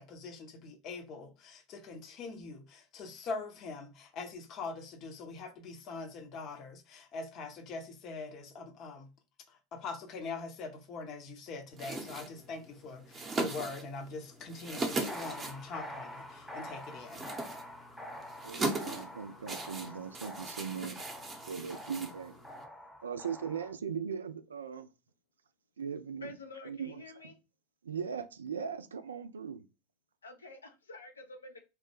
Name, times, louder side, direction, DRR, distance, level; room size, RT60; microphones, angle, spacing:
voice 1, 0.0-9.1 9.5-17.4, left 4 dB, 40° left, 0.7 m, -43 dB
sound 1, 11.7-22.6, right 2 dB, 20° right, 0.7 m, -40 dB
sound 2, 15.1-23.7, equal, 10° left, 0.8 m, -46 dB
voice 2, 18.4-21.0 21.5-22.3 23.0-24.9 25.8-26.3 26.6-27.3 27.8-29.6, right 7 dB, 75° right, 0.3 m, -39 dB
voice 3, 26.2-27.3 30.2-31.7, left 2 dB, 75° left, 0.5 m, -49 dB
3.2 x 2.1 x 3.1 m
figure-of-eight pair, 80°, 0 cm